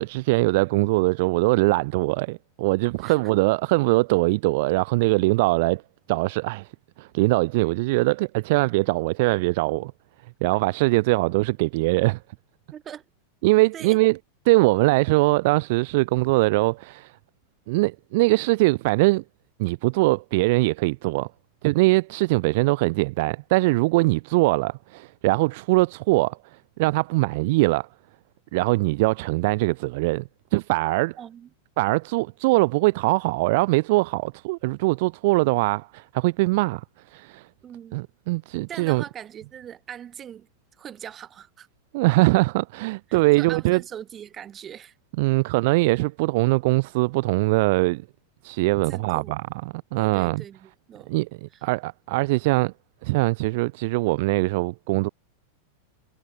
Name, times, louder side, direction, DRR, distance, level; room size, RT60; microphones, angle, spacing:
voice 1, 0.0-5.8 6.1-6.7 7.0-9.9 10.4-12.2 13.4-14.2 14.5-17.1 17.7-19.2 19.6-21.3 21.6-26.4 26.8-27.9 28.5-31.2 31.8-36.8 37.1-37.5 37.9-39.0 41.9-43.8 45.2-48.0 48.4-49.4 49.9-50.4 51.1-52.7 53.0-55.1, right 23 dB, 50° right, 0.3 m, -22 dB
voice 2, 12.7-13.0 13.7-14.0 31.2-31.5 37.6-38.0 38.7-40.5 40.8-41.7 43.1-44.9 48.9-49.4 49.9-51.1 51.5-51.6, right 9 dB, 25° right, 2.2 m, -41 dB
figure-of-eight pair, 90°, 0 cm